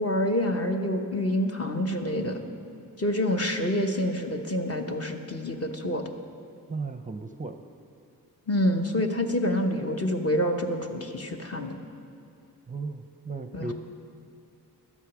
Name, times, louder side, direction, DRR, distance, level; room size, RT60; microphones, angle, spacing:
voice 1, 0.0-2.4 3.0-6.0 8.5-11.8 13.5-13.7, left 1 dB, 40° left, 4 dB, 1.1 m, -27 dB
voice 2, 6.7-7.6 12.7-13.7, right 3 dB, 20° right, 7 dB, 0.5 m, -35 dB
12.5 x 8.2 x 6.1 m, 2.6 s
cardioid pair, 55°, 37 cm